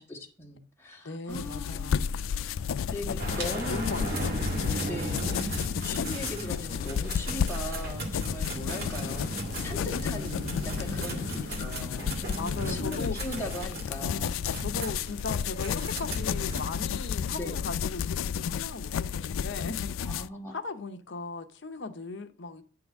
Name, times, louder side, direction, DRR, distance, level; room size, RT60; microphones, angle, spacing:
voice 1, 0.0-2.1 2.9-4.1 4.8-9.3 9.6-14.4 17.3-17.6 20.0-20.6, left 1 dB, 10° left, 1.6 m, -39 dB
voice 2, 1.0-2.1 3.4-4.3 12.4-13.2 14.0-19.9 20.5-22.6, left 3 dB, 60° left, 0.8 m, -38 dB
sound 1, 1.3-20.3, left 7 dB, 80° left, 0.3 m, -32 dB
sound 2, 3.2-16.6, right 1 dB, 50° right, 1.8 m, -36 dB
9.7 x 3.9 x 7.0 m
head